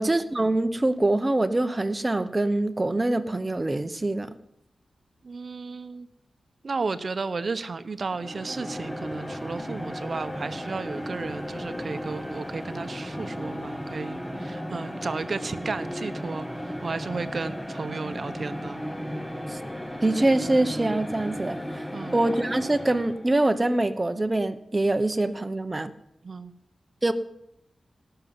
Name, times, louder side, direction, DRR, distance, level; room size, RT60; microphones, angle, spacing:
voice 1, 0.0-4.4 19.5-19.6 20.0-21.8 22.1-25.9 27.0-27.1, right 2 dB, 20° right, 10 dB, 1.0 m, -24 dB
voice 2, 5.2-6.1 6.6-18.8 21.9-22.2 26.2-26.5, right 4 dB, 50° right, 12 dB, 1.0 m, -33 dB
sound 1, 8.0-23.3, equal, 10° left, 1.2 m, -35 dB
18.0 x 6.8 x 9.5 m, 0.78 s
wide cardioid pair, 130°, 0 cm